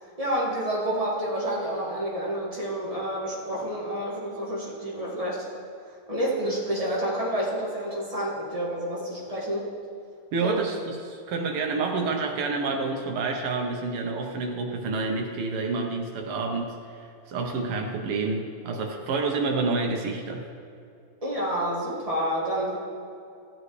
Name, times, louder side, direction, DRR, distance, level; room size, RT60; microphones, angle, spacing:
voice 1, 0.0-5.5 6.1-9.7 10.4-10.6 21.2-22.8, right 1 dB, 15° right, -6 dB, 1.9 m, -29 dB
voice 2, 10.3-20.4, right 3 dB, 90° right, 2 dB, 1.9 m, -28 dB
14.5 x 7.7 x 3.2 m, 2.5 s
omnidirectional pair, 2.4 m